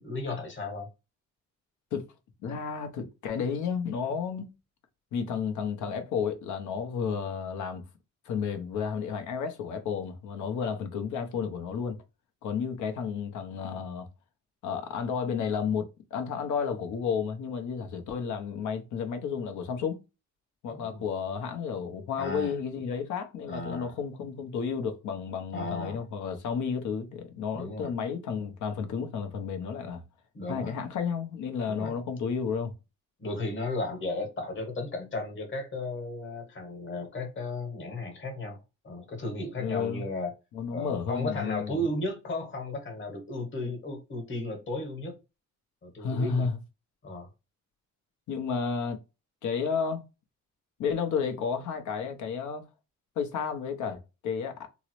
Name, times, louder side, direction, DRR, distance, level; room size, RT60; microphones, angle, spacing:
voice 1, 0.0-0.9 20.7-21.0 22.2-22.5 23.5-23.9 25.5-26.0 27.5-27.9 30.3-30.8 31.7-31.9 33.2-38.6 38.8-40.3 40.7-45.1 45.8-46.5 47.0-47.3, left 2 dB, 40° left, 1.2 m, -34 dB
voice 2, 2.4-4.5 5.1-7.9 8.2-12.0 12.4-14.1 14.6-20.0 20.6-30.0 30.5-32.7 39.6-40.0 40.5-41.8 46.0-46.6 48.3-49.0 49.4-50.0 50.8-52.6 53.2-54.7, left 6 dB, 75° left, 0.8 m, -32 dB
3.7 x 2.0 x 3.0 m
cardioid pair, 90°, 30 cm